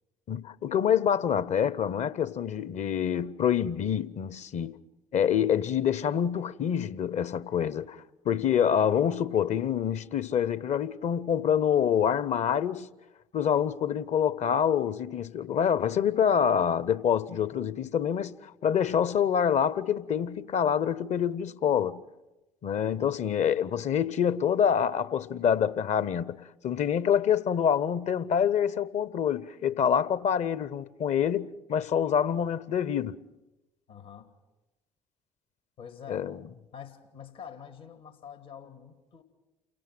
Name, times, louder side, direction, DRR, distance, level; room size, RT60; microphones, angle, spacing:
voice 1, 0.3-4.8 5.1-8.0 8.2-12.9 13.3-22.0 22.6-33.2 36.1-36.4, left 8 dB, 45° left, 0.8 m, -26 dB
voice 2, 22.8-23.2 33.9-34.3 35.8-36.3 36.7-39.2, left 8 dB, 70° left, 2.1 m, -46 dB
29.0 x 18.0 x 6.1 m
figure-of-eight pair, 50°, 16 cm